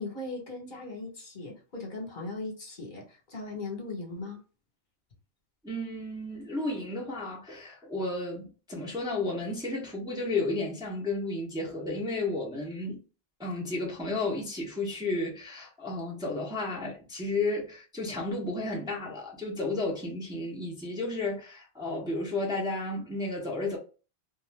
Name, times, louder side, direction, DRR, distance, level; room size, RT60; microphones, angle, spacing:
voice 1, 0.0-4.4, left 3 dB, 55° left, 1.1 m, -38 dB
voice 2, 5.6-13.0 13.4-23.8, left 2 dB, 5° right, 0.6 m, -32 dB
2.4 x 2.3 x 3.2 m
omnidirectional pair, 1.0 m